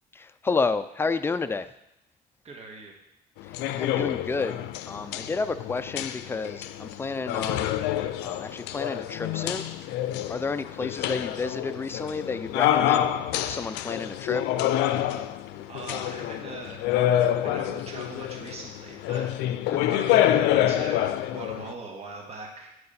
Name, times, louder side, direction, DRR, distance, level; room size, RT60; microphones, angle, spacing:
voice 1, 0.1-1.7 3.4-7.7 8.2-9.7 10.3-13.1 13.4-14.4 19.7-19.9, left 4 dB, 15° left, 11 dB, 0.3 m, -31 dB
voice 2, 2.4-2.9 15.7-19.3 19.8-22.7, right 3 dB, 40° right, 0 dB, 1.5 m, -41 dB
sound 1, 3.4-21.7, left 12 dB, 90° left, 0.4 m, -27 dB
8.5 x 4.7 x 4.2 m, 0.84 s
cardioid pair, 110°, 17 cm